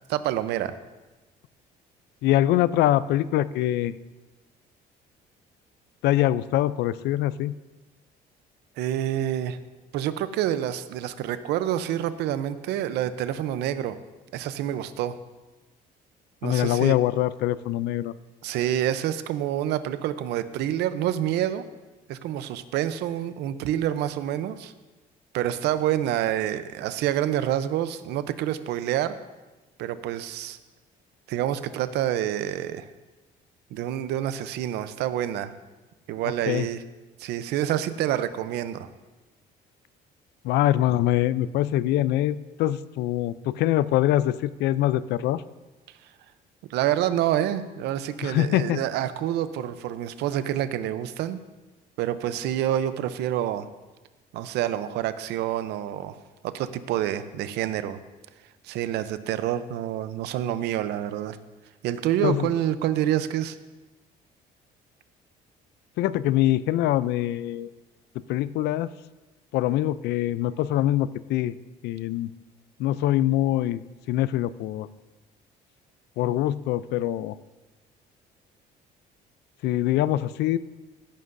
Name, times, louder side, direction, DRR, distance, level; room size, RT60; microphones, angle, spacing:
voice 1, 0.1-0.8 8.8-9.6 9.9-14.0 14.3-15.2 16.4-17.0 18.4-21.6 22.1-24.7 25.3-29.2 29.8-30.6 31.3-32.9 33.7-35.5 36.1-36.8 37.2-38.9 46.7-51.4 52.0-53.7 54.3-56.1 56.4-58.0 58.6-61.4 61.8-63.6, right 11 dB, 85° right, 13 dB, 0.6 m, -27 dB
voice 2, 2.2-3.9 6.0-7.5 16.4-18.1 36.5-36.7 40.4-45.4 48.2-48.8 62.2-62.5 66.0-67.7 68.3-68.9 69.5-71.5 71.8-72.3 72.8-73.8 74.1-74.9 76.2-77.3 79.6-80.6, left 13 dB, 80° left, 17 dB, 0.4 m, -24 dB
15.5 x 11.0 x 2.6 m, 1.2 s
cardioid pair, 110°, 17 cm